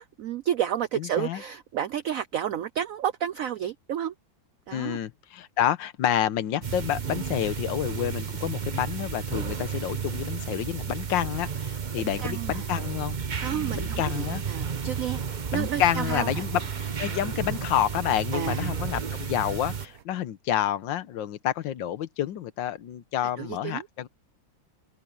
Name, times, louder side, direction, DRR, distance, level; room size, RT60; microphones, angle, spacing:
voice 1, 0.0-4.1 4.7-5.0 12.0-12.7 13.4-16.4 18.3-18.7 23.4-23.9, right 10 dB, 85° right, 0.7 m, -31 dB
voice 2, 0.9-1.4 4.7-13.2 13.5-14.4 15.5-24.1, left 11 dB, 75° left, 1.6 m, -29 dB
sound 1, 6.6-19.9, right 7 dB, 35° right, 0.8 m, -32 dB
sound 2, 14.2-20.0, right 8 dB, 55° right, 1.4 m, -50 dB
omnidirectional pair, 2.1 m